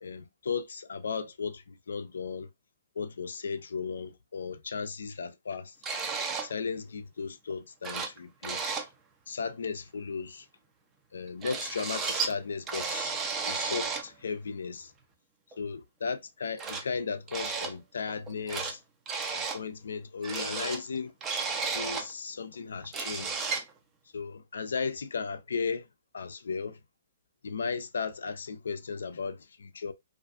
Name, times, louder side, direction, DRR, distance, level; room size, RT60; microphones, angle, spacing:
voice 1, 0.0-2.5 3.0-5.8 6.4-8.6 9.3-10.5 11.1-13.2 13.5-14.9 15.6-18.8 19.3-21.1 21.7-23.5 24.1-25.9 26.1-26.8 27.4-29.9, left 5 dB, 75° left, 0.3 m, -35 dB
sound 1, 5.8-6.5 7.5-7.6 7.8-8.2 8.4-8.9 11.4-12.3 12.7-14.1 15.5-15.6 16.6-16.8 17.3-17.7 18.1-18.7 19.1-19.6 20.2-22.1 22.5-22.6 22.8-23.7, right 5 dB, 20° right, 0.5 m, -33 dB
2.4 x 2.4 x 2.3 m
hypercardioid pair, 125°, 0 cm